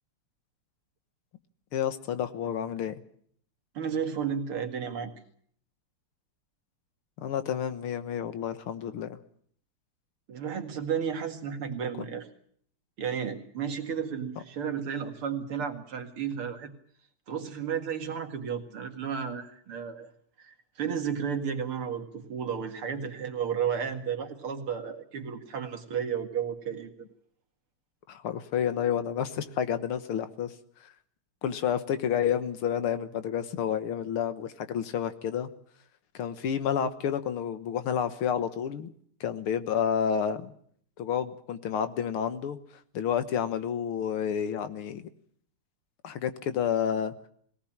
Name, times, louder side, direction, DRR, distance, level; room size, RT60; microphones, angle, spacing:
voice 1, 1.7-3.0 7.2-9.2 28.1-30.5 30.8-30.9 31.4-35.5 36.1-38.9 39.2-40.5 41.0-42.6 42.9-45.0 46.0-47.1, left 8 dB, 85° left, 11 dB, 2.2 m, -30 dB
voice 2, 3.7-5.1 10.3-12.3 13.0-16.7 17.3-20.1 20.4-27.1, right 7 dB, 85° right, 5 dB, 3.0 m, -33 dB
21.5 x 18.0 x 8.8 m, 0.62 s
omnidirectional pair, 2.3 m